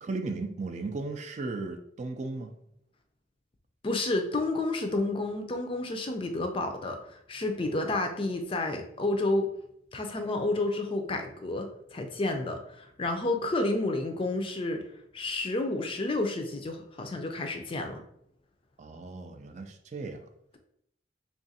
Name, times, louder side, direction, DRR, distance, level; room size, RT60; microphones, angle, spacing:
voice 1, 0.0-2.6 18.8-20.2, right 3 dB, 40° right, 5 dB, 0.3 m, -36 dB
voice 2, 3.8-7.0 7.3-9.5 9.9-14.8 15.1-18.0, left 2 dB, 30° left, 5 dB, 0.4 m, -30 dB
3.4 x 2.4 x 4.0 m, 0.73 s
head